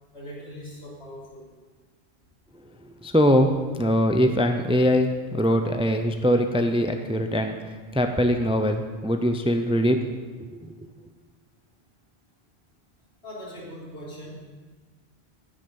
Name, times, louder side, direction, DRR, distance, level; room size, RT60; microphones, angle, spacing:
voice 1, 0.1-1.5 3.8-3.9 13.2-14.3, equal, 80° left, -5 dB, 3.8 m, -40 dB
voice 2, 2.8-10.0 10.4-10.8, equal, 5° right, 6 dB, 0.6 m, -22 dB
9.9 x 9.9 x 7.0 m, 1.4 s
omnidirectional pair, 1.1 m